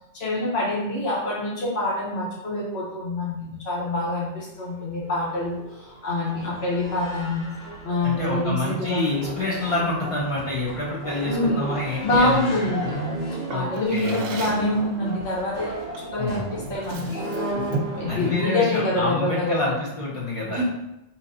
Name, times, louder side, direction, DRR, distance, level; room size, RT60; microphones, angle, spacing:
voice 1, 0.2-7.4 7.8-9.0 11.3-11.6 12.0-13.0 13.5-17.2 17.9-19.7 20.5-20.6, left 2 dB, 60° left, -6 dB, 1.4 m, -26 dB
sound 1, 4.8-18.3, right 1 dB, 85° left, 1.5 m, -35 dB
voice 2, 8.0-12.5 13.5-14.5 16.2-16.4 17.7-17.8 18.1-20.6, left 2 dB, 35° left, -5 dB, 0.6 m, -27 dB
Drawer open or close, 13.5-14.7 15.9-16.2 16.6-18.1, right 3 dB, 80° right, 0.9 m, -34 dB
2.9 x 2.7 x 3.7 m, 0.89 s
omnidirectional pair, 1.3 m